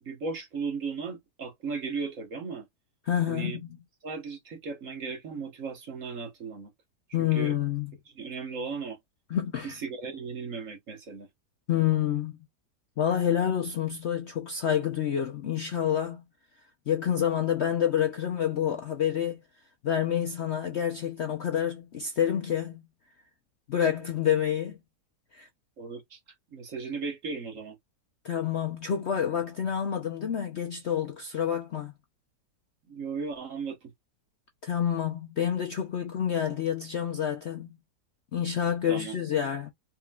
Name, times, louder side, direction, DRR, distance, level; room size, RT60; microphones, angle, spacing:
voice 1, 0.0-2.7 3.3-3.6 4.0-6.7 7.1-7.5 8.1-9.0 9.6-11.3 25.8-26.2 26.5-27.8 32.9-33.9 38.9-39.2, right 5 dB, 50° right, 1.4 m, -36 dB
voice 2, 3.1-3.6 7.1-7.9 9.3-9.8 11.7-12.4 13.0-16.2 16.9-19.4 19.8-22.8 23.7-24.8 25.3-25.5 28.2-31.9 34.6-37.7 38.3-39.7, left 9 dB, 55° left, 0.7 m, -28 dB
4.5 x 3.8 x 2.3 m
omnidirectional pair, 1.8 m